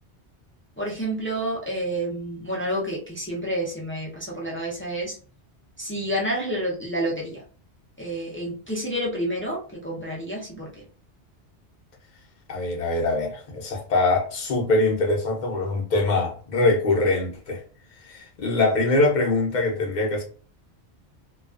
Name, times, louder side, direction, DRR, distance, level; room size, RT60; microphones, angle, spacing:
voice 1, 0.8-5.2 5.8-7.4 8.0-10.8, right 1 dB, 20° left, 0.3 m, -29 dB
voice 2, 12.5-17.6 18.0-20.2, left 2 dB, 50° left, 0.7 m, -23 dB
2.3 x 2.3 x 2.3 m
omnidirectional pair, 1.2 m